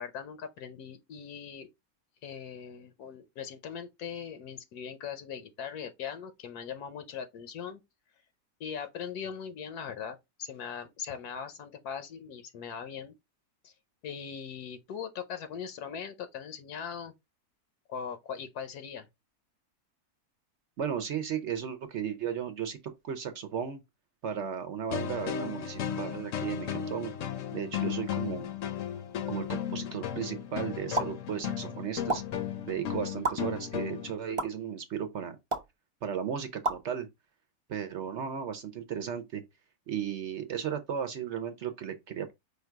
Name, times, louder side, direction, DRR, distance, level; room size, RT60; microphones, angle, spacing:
voice 1, 0.0-1.7 2.2-7.8 8.6-13.1 13.6-13.7 14.0-17.1 17.9-19.1, left 7 dB, 80° left, 1.2 m, -40 dB
voice 2, 20.8-22.8 23.0-23.8 24.2-27.1 27.5-28.5 29.2-32.2 32.7-35.4 36.0-37.1 37.7-39.4 39.9-42.3, right 8 dB, 60° right, 0.8 m, -35 dB
sound 1, 24.9-34.1, left 9 dB, 65° left, 0.9 m, -35 dB
sound 2, 31.0-31.1 32.1-32.2 33.2-33.3 34.4-34.5 35.5-35.7 36.6-36.8, right 3 dB, 25° right, 0.7 m, -28 dB
5.1 x 2.3 x 4.4 m
omnidirectional pair, 1.6 m